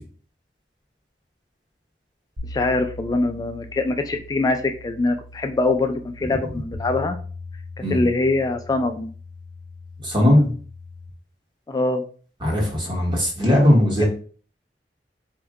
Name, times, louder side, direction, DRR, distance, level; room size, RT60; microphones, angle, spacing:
sound 1, 2.4-11.1, left 2 dB, 75° right, 1.1 m, -39 dB
voice 1, 2.5-7.2 7.9-9.1 11.7-12.0 14.0-14.1, left 2 dB, 20° left, 6 dB, 0.3 m, -23 dB
voice 2, 10.0-10.5 12.4-14.1, left 1 dB, 25° right, -1 dB, 1.4 m, -18 dB
4.5 x 2.6 x 3.6 m, 0.42 s
head